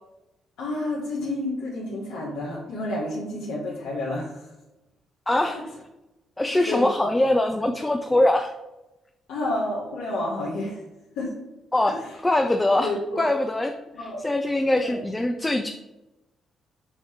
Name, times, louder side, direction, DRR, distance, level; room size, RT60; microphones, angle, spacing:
voice 1, 0.6-4.5 5.4-5.6 6.6-7.1 9.3-10.8 11.1-11.4 12.8-13.2 13.9-14.2 14.8-15.0, left 1 dB, 85° left, -7 dB, 1.5 m, -30 dB
voice 2, 5.3-5.7 6.4-8.5 11.7-15.7, left 1 dB, 15° left, 5 dB, 0.4 m, -23 dB
6.4 x 2.9 x 5.0 m, 0.97 s
cardioid pair, 90°, 0 cm